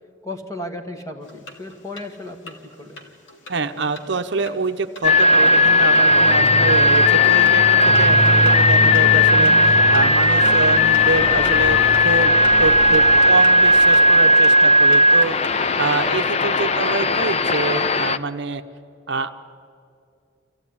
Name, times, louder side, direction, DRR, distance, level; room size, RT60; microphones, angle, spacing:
voice 1, 0.2-3.0 16.4-16.6, left 1 dB, 15° left, 5 dB, 1.7 m, -35 dB
sound 1, 1.2-16.3, left 2 dB, 65° left, 2.5 m, -44 dB
voice 2, 3.5-15.3 15.8-18.6 19.1-19.3, right 3 dB, 60° right, 7 dB, 0.8 m, -26 dB
sound 2, 5.0-18.2, left 1 dB, 30° left, 0.5 m, -15 dB
sound 3, 6.0-14.3, right 1 dB, 15° right, 0.7 m, -28 dB
26.0 x 15.5 x 9.8 m, 2.5 s
head